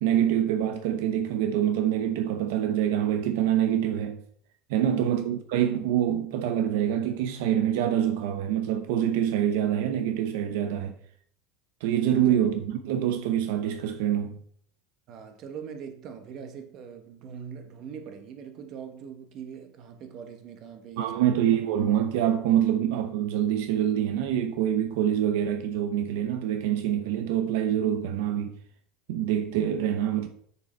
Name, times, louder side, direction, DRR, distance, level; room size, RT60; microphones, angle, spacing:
voice 1, 0.0-4.2 4.7-10.9 11.8-14.4 21.0-28.5 29.1-30.3, right 10 dB, 80° right, 0.7 m, -25 dB
voice 2, 4.9-5.3 12.3-12.4 15.1-21.5, right 7 dB, 50° right, 1.2 m, -42 dB
7.0 x 6.6 x 4.4 m
supercardioid pair, 140°, 0 cm